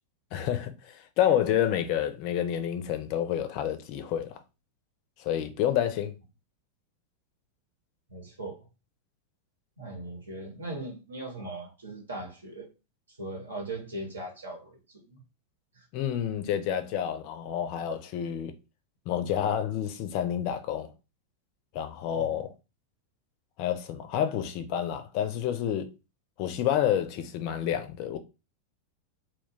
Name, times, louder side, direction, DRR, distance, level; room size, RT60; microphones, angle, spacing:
voice 1, 0.3-4.4 5.2-6.1 15.9-18.5 19.1-20.9 21.7-22.5 23.6-25.9 26.4-28.2, left 10 dB, 45° left, 0.4 m, -29 dB
voice 2, 8.1-8.6 9.8-12.7 13.2-15.2 15.7-15.9 22.1-22.5, right 2 dB, 75° right, 1.0 m, -39 dB
2.2 x 2.1 x 3.6 m
figure-of-eight pair, 90°, 0 cm